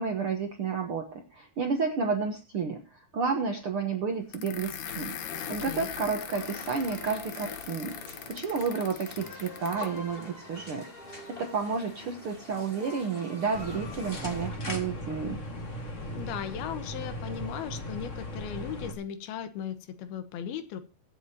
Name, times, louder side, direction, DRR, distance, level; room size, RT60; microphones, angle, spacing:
voice 1, 0.0-10.9 11.3-15.4, right 5 dB, 80° right, 4 dB, 1.2 m, -31 dB
sound 1, 4.3-10.0, left 9 dB, 65° left, 2.6 m, -40 dB
voice 2, 5.5-5.9 16.1-20.8, left 9 dB, 80° left, 11 dB, 3.1 m, -37 dB
sound 2, 6.3-14.5, left 1 dB, 15° left, 2.5 m, -44 dB
sound 3, 13.5-18.9, left 1 dB, 35° left, 1.3 m, -37 dB
23.0 x 8.0 x 2.9 m, 0.30 s
omnidirectional pair, 4.4 m